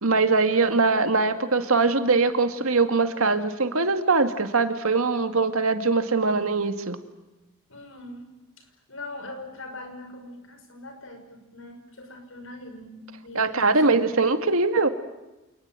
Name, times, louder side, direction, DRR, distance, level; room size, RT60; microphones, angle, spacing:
voice 1, 0.0-7.0 13.4-14.9, right 3 dB, 80° right, 8 dB, 2.2 m, -22 dB
voice 2, 7.7-8.3 8.6-14.4, left 2 dB, 70° left, 6 dB, 5.8 m, -42 dB
28.0 x 20.0 x 9.1 m, 1.0 s
head